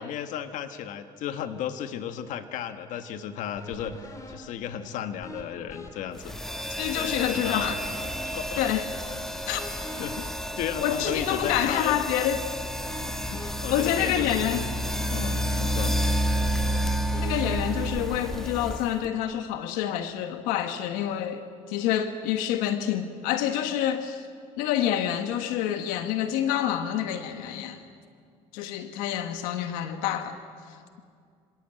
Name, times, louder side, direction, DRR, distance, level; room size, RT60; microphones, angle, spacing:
voice 1, 0.0-6.4 6.9-7.7 8.2-8.8 10.0-10.3 10.5-11.9 13.2-14.6 15.1-16.0, left 9 dB, 70° left, 1.5 m, -34 dB
sound 1, 3.6-18.8, left 1 dB, 25° left, 4.0 m, -45 dB
sound 2, 6.2-19.1, equal, 5° left, 1.5 m, -30 dB
voice 2, 6.8-7.8 8.6-8.9 9.5-9.6 10.8-12.4 13.7-14.6 15.5-15.6 17.2-24.3 24.6-27.8 28.5-30.4, left 10 dB, 90° left, 1.4 m, -27 dB
27.0 x 17.0 x 8.9 m
cardioid pair, 105°, 14 cm